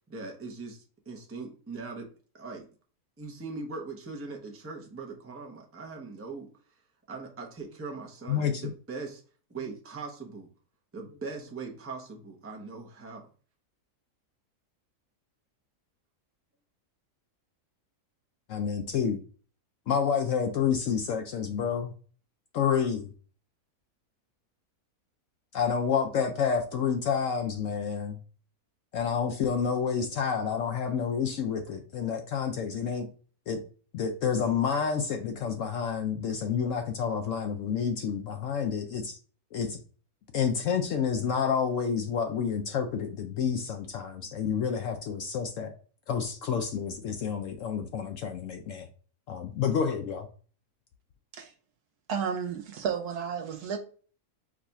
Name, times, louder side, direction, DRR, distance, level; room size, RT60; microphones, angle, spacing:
voice 1, 0.1-2.7 3.2-9.2 9.5-10.5 10.9-13.3, right 4 dB, 15° right, 0.5 m, -41 dB
voice 2, 8.3-8.6 18.5-19.2 19.9-21.9 22.5-23.1 25.5-28.2 28.9-33.1 33.5-33.6 33.9-39.2 39.5-39.8 40.3-45.7 46.1-48.9 49.3-50.3, left 7 dB, 70° left, 0.8 m, -29 dB
voice 3, 52.1-53.8, right 7 dB, 85° right, 1.4 m, -32 dB
4.8 x 2.3 x 4.0 m
omnidirectional pair, 1.6 m